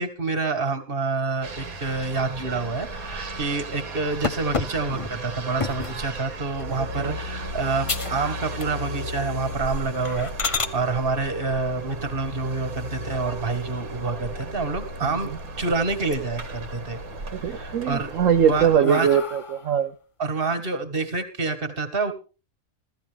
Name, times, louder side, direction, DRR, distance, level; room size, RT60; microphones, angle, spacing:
voice 1, 0.0-17.0 17.3-18.1 18.4-19.2 20.2-22.1, right 4 dB, 40° right, 8 dB, 1.8 m, -27 dB
sound 1, 1.4-18.8, right 1 dB, 90° right, 1.9 m, -35 dB
sound 2, 4.2-6.0 6.6-6.9 7.3-7.4 7.8-8.2 8.5-9.0 9.4-9.5 10.0-10.7 12.8-13.4 13.9-14.0 14.4-14.5 14.8-15.6 15.9-16.5 16.9-17.6 18.1-19.8, left 4 dB, 35° left, 0.6 m, -32 dB
voice 2, 6.8-7.2 15.0-15.4 17.3-19.9, right 8 dB, 70° right, 4 dB, 1.2 m, -22 dB
16.0 x 14.0 x 3.5 m, 0.34 s
omnidirectional pair, 1.5 m